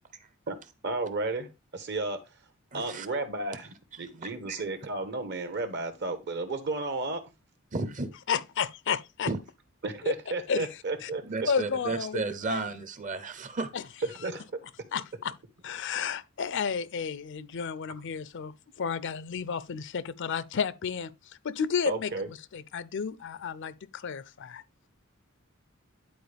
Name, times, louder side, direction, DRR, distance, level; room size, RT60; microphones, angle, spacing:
voice 1, 0.8-1.5 1.7-2.2 2.7-7.2 9.8-11.2 14.2-14.5 21.9-22.3, right 2 dB, 55° right, 1.2 m, -33 dB
voice 2, 2.7-3.1 4.5-4.6 7.7-8.1 9.3-9.4 11.2-13.7, right 3 dB, 35° right, 0.8 m, -33 dB
voice 3, 8.3-9.3 10.0-10.1 10.5-10.7 11.0-11.1 11.5-12.2 12.5-12.7 13.7-13.8 14.9-15.3 15.6-24.6, left 6 dB, 60° left, 0.5 m, -32 dB
10.5 x 4.3 x 3.4 m
head